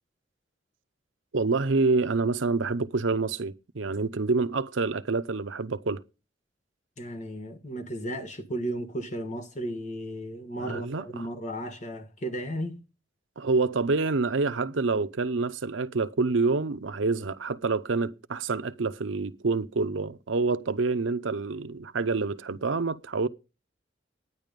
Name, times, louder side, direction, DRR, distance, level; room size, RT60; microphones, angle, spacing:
voice 1, 1.3-6.0 10.6-11.3 13.4-23.3, right 3 dB, 90° right, 0.7 m, -27 dB
voice 2, 7.0-12.8, right 1 dB, 40° left, 1.5 m, -34 dB
11.0 x 9.8 x 5.2 m
head